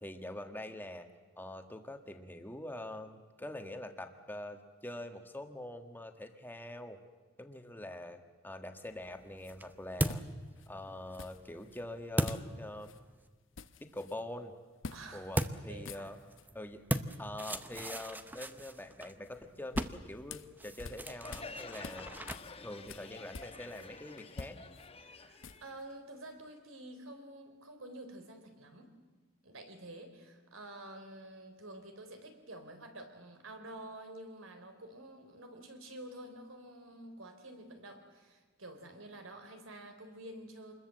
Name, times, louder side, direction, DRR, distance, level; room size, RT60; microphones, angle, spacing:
voice 1, 0.0-1.1 1.4-7.0 7.4-10.2 10.7-12.9 13.8-14.5 15.1-16.2 16.5-16.8 17.2-22.1 22.6-24.6, left 1 dB, 10° left, 6 dB, 1.6 m, -44 dB
sound 1, 8.9-13.3 15.3-24.2, right 1 dB, 10° right, 0.8 m, -40 dB
sound 2, 9.4-9.5 10.1-10.7 11.2-11.8 12.3-12.5 12.8-13.0 13.3-14.2 14.8-15.0 15.3-15.5 15.7-16.5 19.3-21.5 21.8-23.9 24.2-25.8, left 4 dB, 65° left, 0.9 m, -47 dB
voice 2, 14.9-15.3 15.7-16.2 25.0-29.0 29.4-40.7, right 1 dB, 75° right, 6 dB, 3.8 m, -49 dB
Crowd, 21.1-26.5, left 4 dB, 30° left, 1.1 m, -50 dB
27.0 x 21.5 x 7.7 m, 1.3 s
head